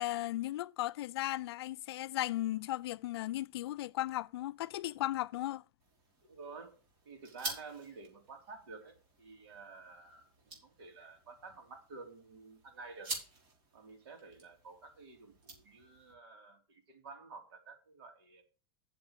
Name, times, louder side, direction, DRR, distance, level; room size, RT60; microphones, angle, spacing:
voice 1, 0.0-5.6, left 15 dB, 85° left, 0.4 m, -36 dB
sound 1, 5.8-16.1, right 3 dB, 45° right, 5.2 m, -49 dB
voice 2, 6.2-6.8 7.0-13.1 13.7-18.4, right 4 dB, 80° right, 3.2 m, -51 dB
7.5 x 6.4 x 7.1 m
supercardioid pair, 140°, 13 cm